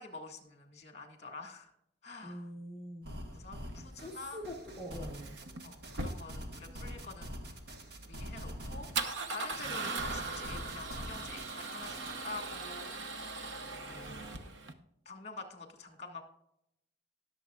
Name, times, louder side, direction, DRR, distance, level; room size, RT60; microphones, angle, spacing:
voice 1, 0.0-1.7 2.0-2.5 3.3-4.4 5.6-7.6 8.0-8.9 9.3-12.9 13.8-14.5 15.1-16.2, left 3 dB, 35° left, 4 dB, 2.0 m, -47 dB
voice 2, 2.2-3.1 3.9-5.4, equal, ahead, -2 dB, 1.2 m, -44 dB
sound 1, 3.0-12.1, equal, 55° right, 1.4 m, -45 dB
Male speech man speaking / Car / Engine starting, 3.6-14.7, right 3 dB, 75° right, 1.0 m, -40 dB
19.5 x 7.2 x 2.4 m, 0.79 s
head